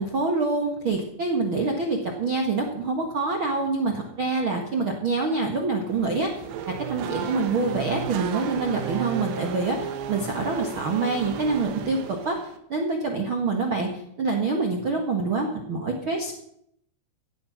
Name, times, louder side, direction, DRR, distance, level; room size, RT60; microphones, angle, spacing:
voice 1, 0.0-12.4 12.7-13.9 14.2-16.3, right 3 dB, 65° right, 2 dB, 1.2 m, -26 dB
Race car auto racing / Accelerating revving vroom, 5.9-12.6, right 9 dB, 90° right, 3.5 m, -34 dB
16.0 x 9.2 x 5.9 m, 0.73 s
omnidirectional pair, 4.9 m